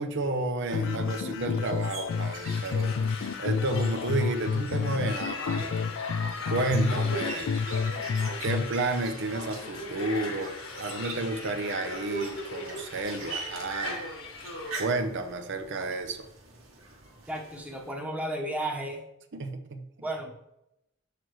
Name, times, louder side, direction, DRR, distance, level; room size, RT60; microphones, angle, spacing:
voice 1, 0.0-5.7 6.1-7.5 8.4-10.5 10.8-14.0 14.8-16.3 19.3-19.9, right 2 dB, 60° right, 7 dB, 0.8 m, -31 dB
sound 1, 0.6-17.9, right 4 dB, 75° right, 1.8 m, -45 dB
sound 2, 0.7-8.7, left 5 dB, 60° left, 0.3 m, -30 dB
sound 3, 2.1-14.7, left 2 dB, 75° left, 1.5 m, -39 dB
voice 2, 17.3-19.0 20.0-20.6, right 1 dB, 5° right, 0 dB, 1.1 m, -34 dB
7.5 x 6.7 x 3.1 m, 0.85 s
head